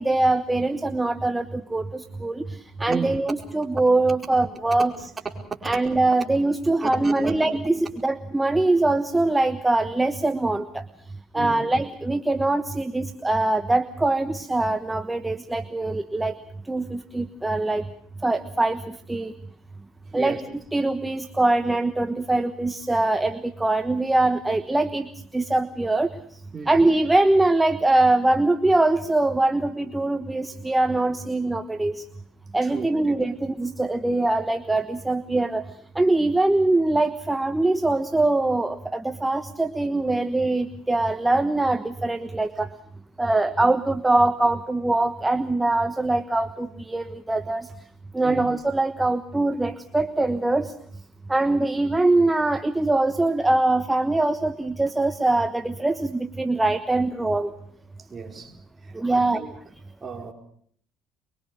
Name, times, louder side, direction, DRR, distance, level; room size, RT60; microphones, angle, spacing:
voice 1, 0.0-4.9 5.6-10.8 11.3-16.3 16.7-17.9 18.2-19.3 20.1-20.4 20.7-26.1 26.7-32.0 32.5-35.6 35.9-42.7 43.2-47.7 48.1-50.7 51.3-57.5 58.9-59.4, right 2 dB, 10° right, 1.2 m, -23 dB
voice 2, 6.8-7.3 11.3-11.6 20.1-20.4 26.5-26.8 32.6-33.2 48.2-48.4 58.1-58.5 59.1-59.5 60.0-60.3, right 4 dB, 30° right, 4.8 m, -33 dB
24.0 x 23.5 x 6.3 m
supercardioid pair, 90°, 0 cm